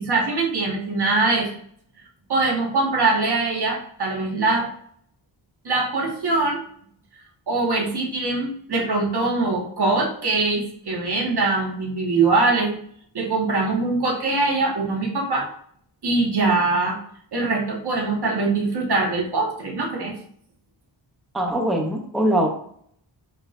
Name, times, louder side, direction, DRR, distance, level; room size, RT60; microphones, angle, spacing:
voice 1, 0.0-1.5 2.3-4.7 5.6-6.6 7.5-12.7 13.1-15.5 16.0-17.0 17.3-20.1, right 3 dB, 60° right, -1 dB, 1.9 m, -22 dB
voice 2, 21.3-22.5, right 1 dB, ahead, 1 dB, 0.8 m, -22 dB
10.5 x 4.5 x 2.6 m, 0.63 s
wide cardioid pair, 160°, 45 cm